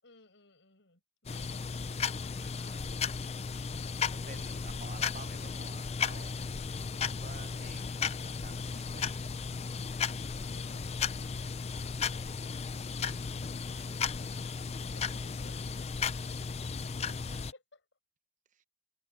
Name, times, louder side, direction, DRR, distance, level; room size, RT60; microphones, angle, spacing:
voice 1, 0.0-2.3 14.9-15.9 17.5-17.8, left 3 dB, 75° left, 7.6 m, -62 dB
sound 1, 1.3-17.5, left 5 dB, 35° left, 0.5 m, -35 dB
voice 2, 2.4-2.9 4.1-6.6 7.0-9.3 13.3-14.3 16.6-16.7 17.1-17.5, right 5 dB, 45° right, 0.8 m, -53 dB
head